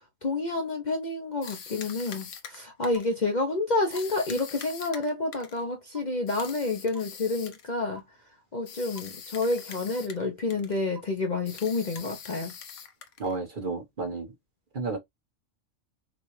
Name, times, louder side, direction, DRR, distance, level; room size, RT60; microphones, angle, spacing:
voice 1, 0.2-8.0 8.5-12.5, left 3 dB, 40° left, 0.8 m, -29 dB
sound 1, 1.4-3.2 3.9-5.6 6.3-7.7 8.7-10.3 10.5-10.8 11.5-13.4, left 7 dB, 70° left, 1.2 m, -43 dB
sound 2, 3.0-3.1 3.9-4.0 4.9-5.0 6.0-6.1 7.0-7.1 8.0-8.1 9.0-9.1 10.0-10.1 11.0-11.1 12.0-12.1, right 3 dB, 80° right, 1.7 m, -44 dB
voice 2, 13.2-14.3 14.7-15.0, right 3 dB, 40° right, 1.3 m, -32 dB
6.1 x 2.4 x 3.2 m
omnidirectional pair, 1.3 m